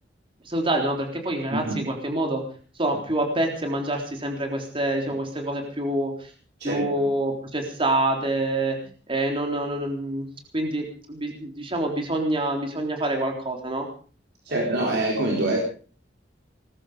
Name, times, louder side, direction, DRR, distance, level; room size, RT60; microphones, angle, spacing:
voice 1, 0.4-2.4 2.8-6.3 6.6-8.8 9.1-10.3 10.5-13.9 14.5-14.6, right 1 dB, 30° right, 2 dB, 3.8 m, -26 dB
voice 2, 1.5-1.8 6.6-6.9 14.5-15.6, right 2 dB, 65° right, -1 dB, 4.2 m, -25 dB
20.5 x 14.0 x 5.1 m, 0.40 s
head